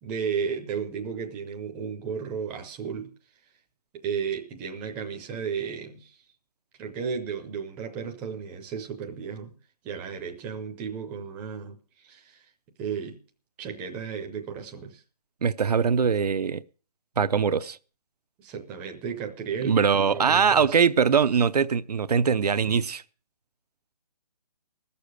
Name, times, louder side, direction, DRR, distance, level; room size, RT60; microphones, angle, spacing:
voice 1, 0.0-3.1 4.0-6.2 6.8-9.5 9.8-11.8 12.0-12.4 12.8-13.2 13.6-15.0 18.4-20.8, right 6 dB, 10° right, 0.6 m, -34 dB
voice 2, 15.4-16.6 17.2-17.8 19.6-23.0, right 6 dB, 75° right, 0.7 m, -22 dB
17.0 x 6.9 x 6.6 m
hypercardioid pair, 165°, 20 cm